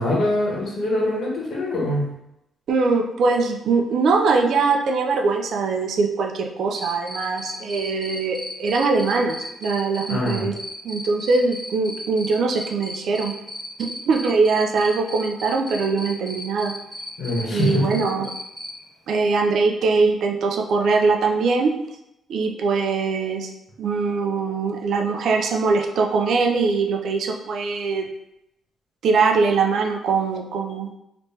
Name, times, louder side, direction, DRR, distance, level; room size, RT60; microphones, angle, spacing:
voice 1, 0.0-2.1 10.1-10.4 17.2-17.9, left 1 dB, 55° left, -4 dB, 1.4 m, -23 dB
voice 2, 2.7-10.6 10.8-13.3 14.1-16.7 17.5-18.3 19.1-21.7 22.3-23.5 23.8-28.1 29.0-31.0, right 4 dB, 70° right, 2 dB, 0.5 m, -22 dB
Cricket, 6.7-18.7, equal, ahead, 0.6 m, -34 dB
3.4 x 2.9 x 2.9 m, 0.83 s
cardioid pair, 90°, 0 cm